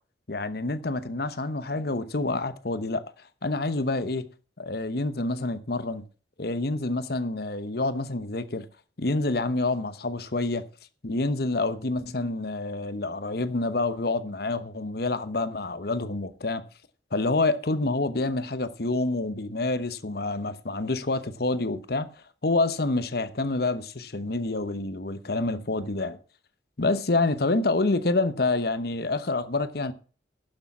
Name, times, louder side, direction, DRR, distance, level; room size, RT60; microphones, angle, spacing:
voice 1, 0.3-3.0 3.4-4.3 4.6-6.1 6.4-8.7 9.0-10.6 11.0-16.6 17.1-22.1 22.4-26.2 26.8-29.9, left 2 dB, 60° left, 1.0 m, -27 dB
11.5 x 6.9 x 7.2 m
head